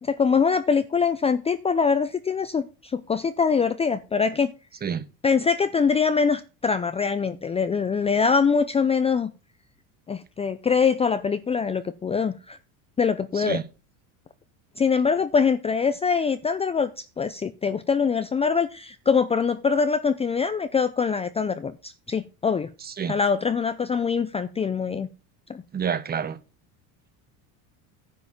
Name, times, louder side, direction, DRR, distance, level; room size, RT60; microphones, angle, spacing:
voice 1, 0.0-4.5 5.2-9.3 10.1-12.6 13.0-13.6 14.8-22.7 23.1-25.1 25.5-25.6, left 5 dB, 15° left, 0.5 m, -23 dB
voice 2, 22.8-23.1 25.7-26.4, right 7 dB, 25° right, 1.0 m, -28 dB
10.5 x 5.2 x 7.3 m
supercardioid pair, 125°, 39 cm